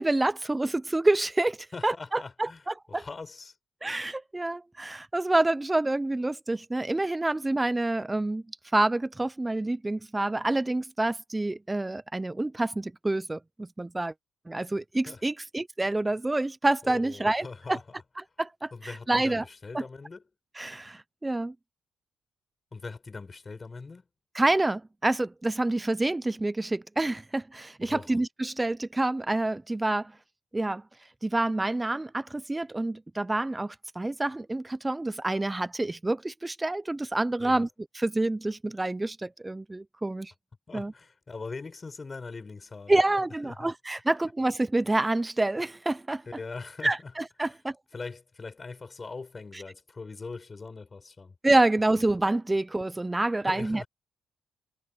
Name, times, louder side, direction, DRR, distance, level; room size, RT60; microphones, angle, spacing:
voice 1, 0.0-1.6 1.8-2.5 2.9-3.1 3.8-8.4 8.7-14.1 14.5-17.8 18.4-19.4 19.7-19.8 20.6-21.5 24.3-30.1 30.5-30.8 31.2-37.7 38.0-40.3 40.7-40.9 42.9-46.2 46.8-47.8 51.4-53.8, right 2 dB, 15° right, 0.5 m, -27 dB
voice 2, 1.7-3.6 15.1-15.2 16.8-17.9 18.7-20.3 22.7-24.1 27.8-28.1 37.4-37.7 40.7-43.0 43.4-43.7 46.3-47.1 47.4-47.6 47.9-51.3 53.5-53.9, left 4 dB, 30° left, 6.0 m, -41 dB
cardioid pair, 90°, 0 cm